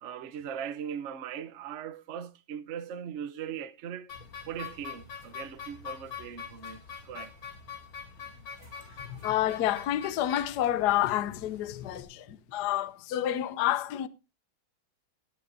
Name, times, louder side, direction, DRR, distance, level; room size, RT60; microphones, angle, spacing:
voice 1, 0.0-4.1 4.5-7.4 8.5-9.2, right 8 dB, 55° right, 0.8 m, -40 dB
sound 1, 4.1-12.0, left 7 dB, 80° left, 3.5 m, -44 dB
voice 2, 9.0-14.1, left 13 dB, 65° left, 1.1 m, -29 dB
19.0 x 9.5 x 2.7 m
omnidirectional pair, 2.2 m